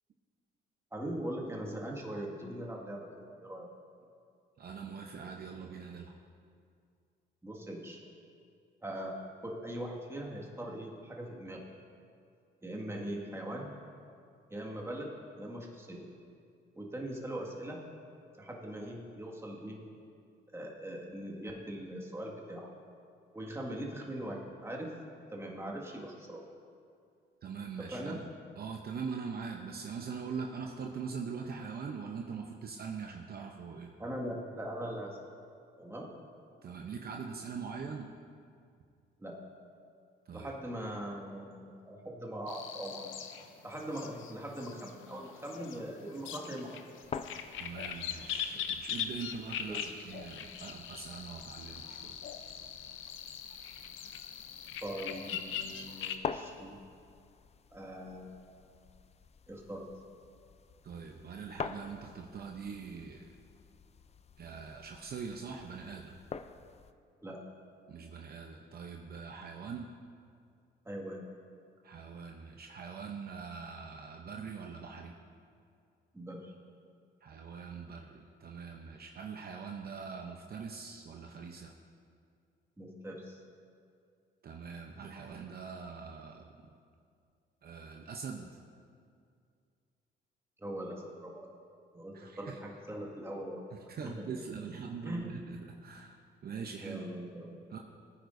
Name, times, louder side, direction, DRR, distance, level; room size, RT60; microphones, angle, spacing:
voice 1, 0.9-3.7 7.4-8.0 8.8-11.7 12.6-13.7 14.5-16.1 16.8-17.9 18.3-19.8 20.5-22.7 23.3-25.0 25.3-26.4 27.9-28.2 34.0-35.2 35.8-36.1 39.2-39.4 40.3-43.3 43.6-46.8 48.5-48.6 49.7-49.8 54.8-56.8 57.7-58.3 59.5-59.9 67.2-67.4 70.9-71.2 76.1-76.5 82.8-83.4 90.6-91.5 91.9-93.6 94.0-94.2 95.0-95.4 96.8-97.6, right 1 dB, 15° right, -2 dB, 1.9 m, -41 dB
voice 2, 4.6-6.1 27.4-28.2 28.6-33.9 36.6-38.1 40.3-40.5 47.6-52.2 60.8-63.3 64.4-66.2 67.9-69.9 71.8-75.1 77.2-81.7 84.4-86.5 87.6-88.5 92.1-92.6 93.9-97.0 97.7-97.8, right 5 dB, 50° right, 2 dB, 0.8 m, -42 dB
sound 1, 42.5-56.2, left 8 dB, 80° left, 0.7 m, -41 dB
sound 2, 47.0-66.9, left 6 dB, 35° left, 0.4 m, -47 dB
19.0 x 9.5 x 2.7 m, 2.3 s
cardioid pair, 90°, 20 cm